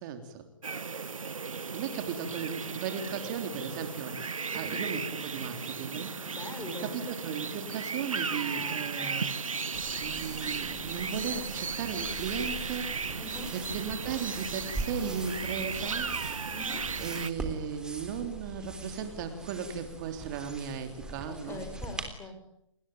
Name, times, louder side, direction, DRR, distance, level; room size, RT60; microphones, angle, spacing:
voice 1, 0.0-0.4 1.7-6.2 6.7-9.3 10.0-13.2 13.5-16.1 17.0-21.6, right 7 dB, 35° right, 7 dB, 3.3 m, -36 dB
sound 1, 0.6-17.3, right 5 dB, 80° right, 1.0 m, -35 dB
voice 2, 4.5-4.8 6.2-7.0 13.2-13.5 16.5-16.8 21.3-22.4, left 2 dB, 15° left, 7 dB, 5.4 m, -42 dB
sound 2, 9.7-22.1, right 2 dB, 5° right, 3.4 m, -42 dB
29.5 x 21.0 x 8.9 m, 0.79 s
figure-of-eight pair, 130°, 17 cm